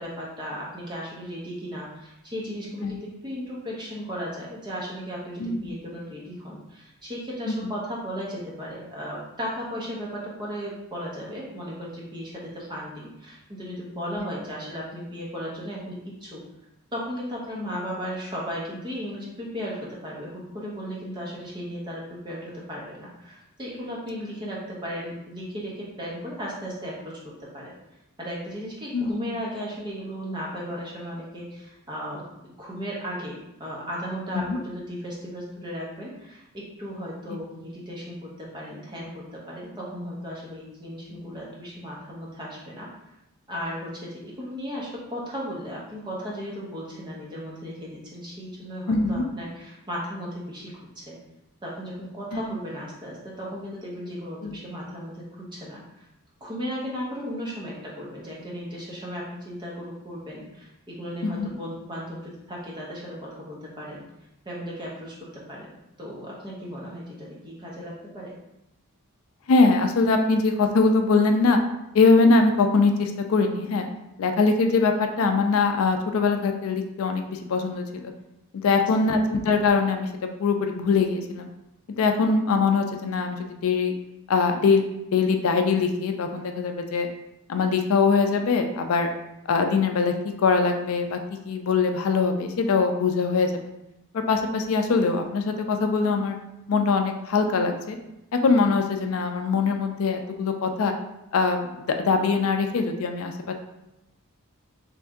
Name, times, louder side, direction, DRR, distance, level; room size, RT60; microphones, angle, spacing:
voice 1, 0.0-16.4 16.9-27.7 28.2-42.9 43.5-51.2 51.6-56.1 56.4-64.0 64.4-65.7 66.0-68.3 78.7-79.1, equal, 20° right, -5 dB, 0.8 m, -36 dB
voice 2, 5.4-5.8 7.5-7.7 28.9-29.1 34.3-34.6 48.9-49.2 52.3-52.5 54.4-54.6 61.2-61.5 69.5-71.6 71.9-73.9 74.2-78.1 78.5-80.1 80.4-81.5 82.0-83.9 84.3-84.8 85.1-87.1 87.5-89.1 89.5-90.1 90.4-91.2 91.5-93.7 94.1-96.4 96.7-98.0 98.4-100.9 101.3-103.5, left 4 dB, 65° left, 5 dB, 0.4 m, -22 dB
3.2 x 2.6 x 3.5 m, 0.89 s
head